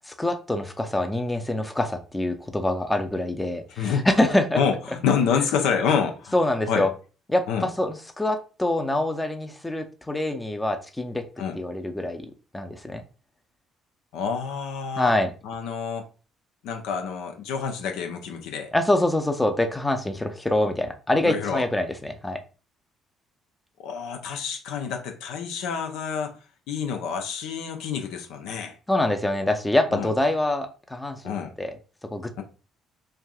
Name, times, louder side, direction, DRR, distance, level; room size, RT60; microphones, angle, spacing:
voice 1, 0.1-4.6 6.3-6.9 7.3-11.3 11.5-12.3 12.5-13.0 15.0-15.3 18.7-22.4 28.9-31.7 32.1-32.3, left 1 dB, 15° left, 0.5 m, -25 dB
voice 2, 3.8-4.1 4.5-6.4 6.7-6.9 7.5-7.7 11.4-11.6 14.1-15.1 15.4-16.1 16.6-18.7 21.2-21.7 23.8-26.4 26.7-28.8 29.9-30.1 31.2-31.5 32.4-32.5, left 6 dB, 70° left, 0.4 m, -27 dB
3.2 x 2.5 x 2.3 m
hypercardioid pair, 50°, 0 cm